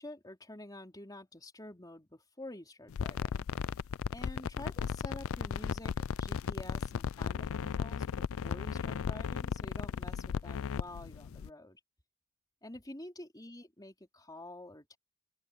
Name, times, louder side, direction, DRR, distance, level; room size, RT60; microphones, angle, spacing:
voice 1, 0.0-3.5 4.1-8.1 8.4-11.8 12.6-15.0, left 1 dB, 15° left, 3.7 m, -48 dB
sound 1, 2.9-11.5, left 7 dB, 65° left, 0.4 m, -36 dB
open air
head